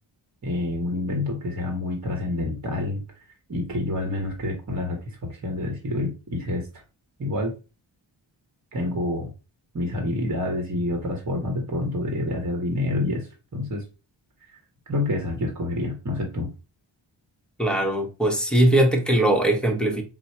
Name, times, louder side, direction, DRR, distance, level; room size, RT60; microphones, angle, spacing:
voice 1, 0.4-3.0 3.5-6.7 7.2-7.5 8.7-9.3 9.7-13.8 14.9-16.5, left 2 dB, 35° right, 0.9 m, -28 dB
voice 2, 17.6-20.0, right 1 dB, ahead, 0.8 m, -20 dB
4.5 x 2.0 x 4.2 m
wide cardioid pair, 105°, 45 cm